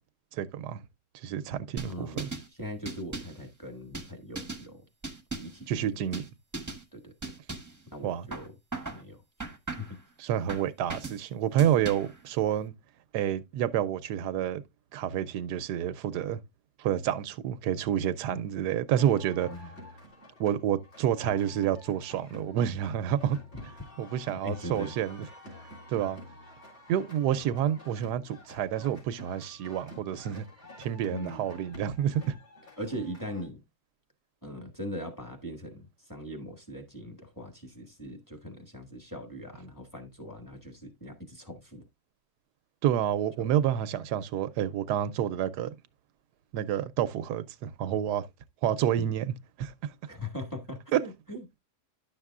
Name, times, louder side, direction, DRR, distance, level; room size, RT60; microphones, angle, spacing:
voice 1, 0.3-0.8 1.1-2.3 5.7-6.2 8.0-8.3 10.2-12.7 13.1-14.6 14.9-16.4 16.8-19.5 20.4-23.4 23.6-23.7 24.0-25.3 25.9-26.2 26.9-30.4 30.8-32.3 42.8-45.7 46.5-48.3 48.6-49.7 50.9-51.0, right 10 dB, 85° right, 1.2 m, -29 dB
sound 1, 1.8-2.5 2.9-3.4 3.9-4.7 5.0-5.6 6.1-6.3 6.5-6.8 7.2-7.8 8.3-9.0 9.4-10.0 10.5-11.2 11.6-12.2, right 3 dB, 15° right, 0.9 m, -38 dB
voice 2, 1.9-4.8 5.4-6.0 6.9-7.3 7.9-8.5 8.9-9.5 9.8-9.9 18.3-18.4 19.5-19.7 23.5-23.6 24.4-24.9 31.1-31.4 32.2-32.4 32.8-33.6 34.4-41.8 43.4-43.5 48.9-49.1 50.1-51.6, equal, 10° left, 1.7 m, -41 dB
sound 2, 19.0-33.4, left 1 dB, 45° left, 3.6 m, -50 dB
10.5 x 6.6 x 2.4 m
omnidirectional pair, 1.7 m